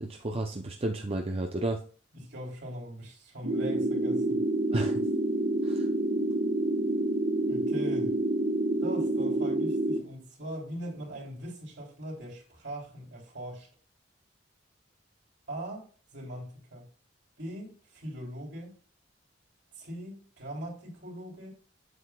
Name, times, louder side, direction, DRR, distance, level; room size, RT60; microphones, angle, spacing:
voice 1, 0.0-1.8 4.7-5.0 5.6-5.9, right 2 dB, 30° right, 0.6 m, -32 dB
voice 2, 2.1-4.4 7.5-8.2 8.8-13.7 15.5-15.9 16.1-16.9 17.4-18.7 19.8-21.5, right 1 dB, 65° right, 3.4 m, -40 dB
sound 1, 3.4-10.0, right 1 dB, 85° right, 1.4 m, -28 dB
8.0 x 7.7 x 2.3 m
head